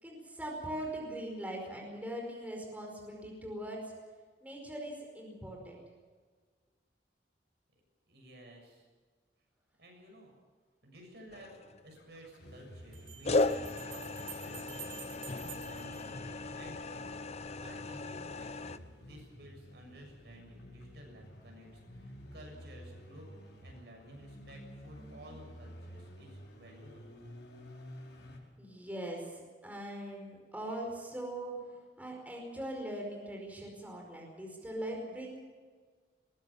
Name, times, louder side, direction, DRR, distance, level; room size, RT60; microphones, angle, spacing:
voice 1, 0.0-3.8 4.4-5.8 28.6-31.5 32.0-35.4, right 1 dB, 10° right, 0 dB, 5.0 m, -41 dB
voice 2, 8.1-8.9 9.8-10.3 10.8-27.1, right 1 dB, 70° right, 2 dB, 7.1 m, -54 dB
sound 1, 11.3-12.0 13.2-18.8, left 2 dB, 40° left, 0.7 m, -36 dB
sound 2, 11.3-11.4 12.9-16.9, right 8 dB, 35° right, 3.4 m, -50 dB
sound 3, 11.9-28.4, equal, 85° left, 4.9 m, -52 dB
21.5 x 18.5 x 7.2 m, 1.5 s
head